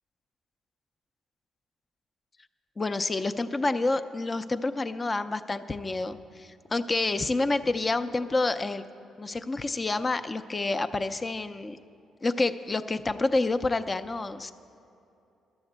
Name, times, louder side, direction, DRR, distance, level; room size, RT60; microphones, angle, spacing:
voice 1, 2.8-8.8 9.2-11.8 12.2-14.5, left 2 dB, 25° left, 11 dB, 0.4 m, -28 dB
11.5 x 7.1 x 7.8 m, 2.7 s
cardioid pair, 90°, 0 cm